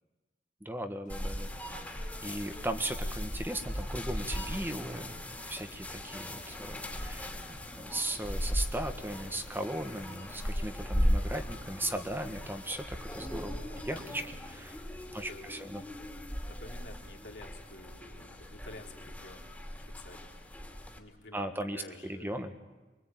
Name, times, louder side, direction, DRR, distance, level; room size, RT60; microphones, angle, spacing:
voice 1, 0.6-1.5 1.8-14.8 15.1-15.8 21.3-22.5, right 1 dB, 10° right, 7 dB, 1.5 m, -38 dB
sound 1, 1.1-11.5, left 1 dB, 45° left, 2.2 m, -56 dB
sound 2, 1.1-21.0, equal, 10° left, 2.8 m, -37 dB
voice 2, 13.3-14.1 15.2-15.7 16.5-20.4 21.0-22.5, left 2 dB, 80° left, 1 dB, 3.7 m, -51 dB
24.5 x 23.5 x 9.3 m, 1.2 s
head